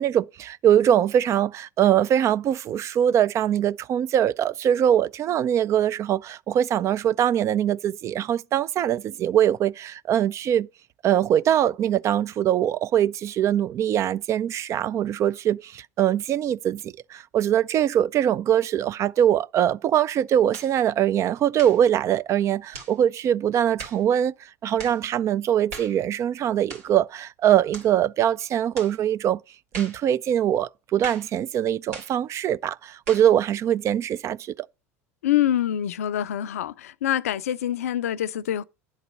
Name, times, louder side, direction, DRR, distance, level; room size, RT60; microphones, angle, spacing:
voice 1, 0.0-10.7 11.0-29.4 29.8-34.7, right 10 dB, 35° right, 0.3 m, -22 dB
sound 1, 20.5-20.8 21.5-21.8 22.7-23.0 23.8-24.0 24.8-25.0 25.7-26.0 26.7-26.9 27.7-27.9 28.7-29.0 29.7-30.0 31.0-31.3 31.9-32.2 33.1-33.3, right 3 dB, 70° right, 2.4 m, -39 dB
voice 2, 35.2-38.6, left 11 dB, 75° left, 0.4 m, -25 dB
10.0 x 4.0 x 5.3 m
figure-of-eight pair, 75°, 8 cm